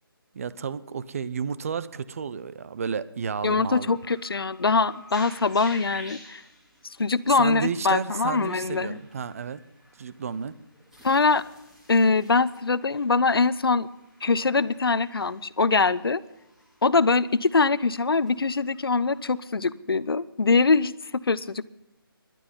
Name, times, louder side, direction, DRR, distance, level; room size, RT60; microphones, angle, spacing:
voice 1, 0.3-4.0 7.3-9.6 10.0-10.5, right 6 dB, 35° right, 16 dB, 0.7 m, -32 dB
voice 2, 3.4-6.4 6.8-9.0 11.0-11.4 11.9-13.9 14.2-16.2 16.8-21.7, left 4 dB, 70° left, 17 dB, 0.8 m, -23 dB
sound 1, 3.4-19.4, left 1 dB, 5° right, 2.5 m, -51 dB
17.5 x 12.0 x 5.5 m, 0.94 s
figure-of-eight pair, 155°, 13 cm